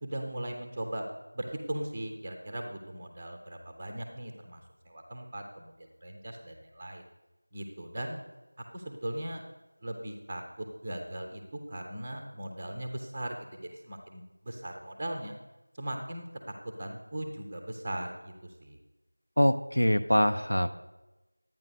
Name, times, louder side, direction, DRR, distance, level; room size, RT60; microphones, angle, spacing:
voice 1, 0.0-1.1 1.3-7.0 7.5-8.2 8.7-9.4 9.8-15.3 15.7-16.3 16.8-18.8, right 1 dB, 10° right, 3 dB, 0.6 m, -39 dB
voice 2, 19.4-20.7, equal, 75° left, 10 dB, 0.8 m, -24 dB
11.5 x 8.9 x 4.1 m, 1.0 s
figure-of-eight pair, 175°, 0 cm